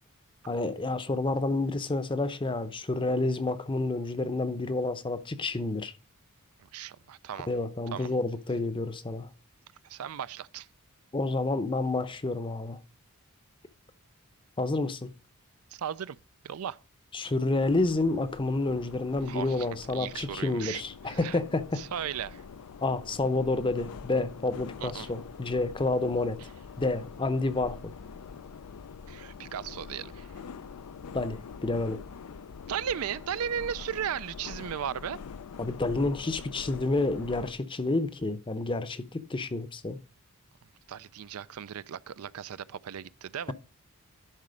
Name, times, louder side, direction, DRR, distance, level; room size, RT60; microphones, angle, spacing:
voice 1, 0.5-5.9 7.5-9.3 11.1-12.8 14.6-15.1 17.1-21.8 22.8-26.4 26.8-27.9 31.1-32.0 35.6-40.0, left 2 dB, 20° left, 0.7 m, -29 dB
voice 2, 6.6-7.5 7.9-8.1 9.8-10.7 15.7-16.2 16.4-16.8 19.2-21.4 21.7-22.4 24.8-25.1 29.1-30.3 32.7-35.2 40.9-43.5, right 8 dB, 70° right, 0.4 m, -36 dB
sound 1, 17.6-37.5, left 6 dB, 90° left, 0.5 m, -45 dB
11.0 x 4.2 x 5.0 m
head